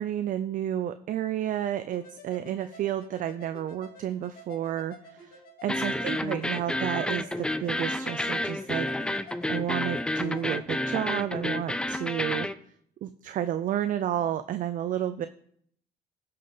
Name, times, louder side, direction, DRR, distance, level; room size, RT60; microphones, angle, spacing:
voice 1, 0.0-12.5 13.0-15.3, right 11 dB, 50° right, 11 dB, 0.5 m, -31 dB
sound 1, 1.9-10.6, left 2 dB, 60° left, 2.5 m, -50 dB
sound 2, 5.7-12.6, left 1 dB, 5° left, 0.5 m, -30 dB
15.5 x 5.7 x 3.9 m, 0.66 s
cardioid pair, 110°, 17 cm